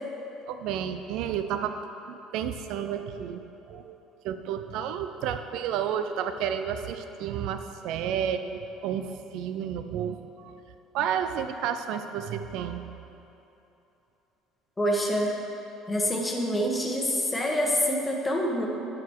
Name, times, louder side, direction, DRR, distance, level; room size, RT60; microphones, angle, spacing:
voice 1, 0.5-1.8 2.1-3.4 3.7-4.0 4.2-10.5 10.9-12.8, right 8 dB, 70° right, 8 dB, 0.5 m, -31 dB
voice 2, 14.8-15.3 15.9-18.7, equal, 15° left, -1 dB, 1.2 m, -26 dB
10.5 x 4.9 x 4.6 m, 3.0 s
supercardioid pair, 105°, 0 cm